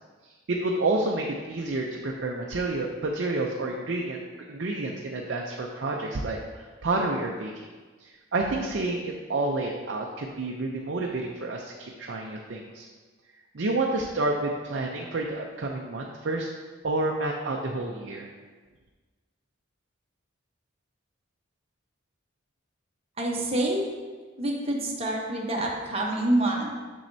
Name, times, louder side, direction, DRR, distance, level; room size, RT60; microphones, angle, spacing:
voice 1, 0.2-4.2 4.5-7.5 8.0-12.9 13.5-16.5 16.8-18.3, right 2 dB, 60° right, 0 dB, 0.5 m, -29 dB
voice 2, 23.2-23.8 24.4-26.7, right 1 dB, 30° right, -2 dB, 1.0 m, -27 dB
7.4 x 6.3 x 2.7 m, 1.4 s
head